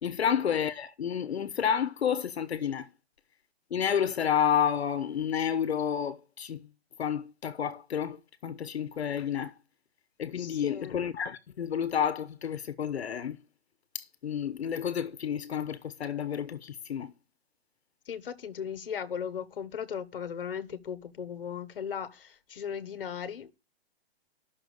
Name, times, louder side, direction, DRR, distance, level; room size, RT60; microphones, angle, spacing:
voice 1, 0.0-2.9 3.7-6.6 7.0-8.2 8.4-9.5 10.2-13.4 13.9-17.1, left 8 dB, 85° left, 1.1 m, -30 dB
voice 2, 10.4-11.0 18.1-23.5, left 7 dB, 60° left, 1.4 m, -37 dB
11.0 x 6.4 x 6.4 m
hypercardioid pair, 180°, 31 cm